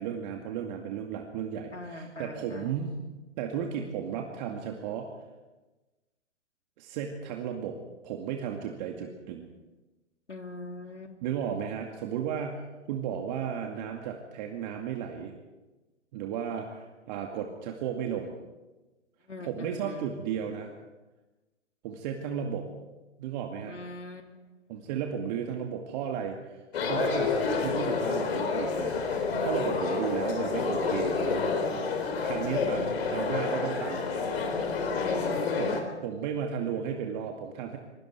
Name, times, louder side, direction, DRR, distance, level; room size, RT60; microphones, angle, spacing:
voice 1, 0.0-3.0 3.4-5.1 6.8-7.8 8.0-9.5 11.2-15.3 16.1-18.4 19.4-20.7 21.8-22.7 23.2-23.8 24.7-26.6 26.9-29.0 29.4-31.5 32.2-34.1 35.6-37.8, right 8 dB, 40° right, 2 dB, 2.2 m, -34 dB
voice 2, 1.7-2.7 10.3-11.2 19.3-20.1 23.7-24.3 34.9-35.7, left 2 dB, 85° left, 5 dB, 2.9 m, -41 dB
sound 1, 26.7-35.8, left 4 dB, 60° left, 4.2 m, -29 dB
28.0 x 23.0 x 4.7 m, 1.1 s
figure-of-eight pair, 120°, 35 cm